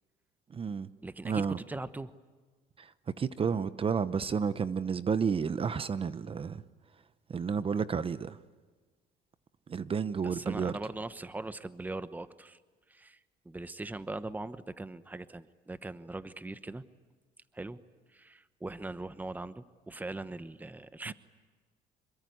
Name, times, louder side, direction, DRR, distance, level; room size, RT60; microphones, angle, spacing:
voice 1, 0.5-0.9 1.2-1.6 3.2-6.6 7.3-8.4 9.7-10.7 21.1-21.2, right 6 dB, 35° right, 1.0 m, -31 dB
voice 2, 1.0-2.1 10.2-12.6 12.9-13.2 13.4-16.8 17.5-17.8 18.1-21.1, right 2 dB, 10° right, 1.0 m, -40 dB
26.5 x 23.0 x 9.5 m
cardioid pair, 110°, 17 cm